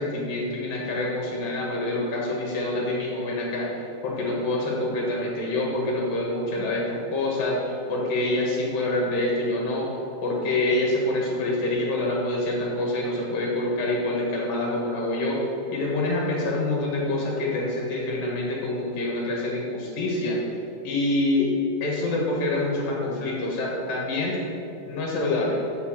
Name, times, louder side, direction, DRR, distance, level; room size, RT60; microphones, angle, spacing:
voice 1, 0.0-9.9 10.2-20.4 20.8-21.5 21.8-24.4 24.9-25.6, left 2 dB, 70° left, -2 dB, 3.0 m, -26 dB
7.3 x 6.9 x 7.3 m, 2.8 s
omnidirectional pair, 4.3 m